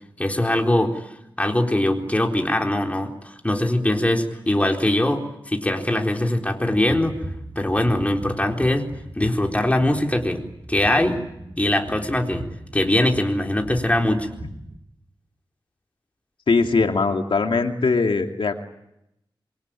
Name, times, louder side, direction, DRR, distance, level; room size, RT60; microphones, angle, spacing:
voice 1, 0.2-1.0 1.4-7.2 7.6-8.9 9.1-11.2 11.6-12.5 12.7-14.3, left 1 dB, 15° left, 2 dB, 4.1 m, -22 dB
sound 1, 6.7-14.8, right 1 dB, 25° right, 2.7 m, -38 dB
voice 2, 16.5-18.6, left 4 dB, 80° left, 4 dB, 2.5 m, -21 dB
26.5 x 24.0 x 9.0 m, 0.83 s
wide cardioid pair, 80°, 9 cm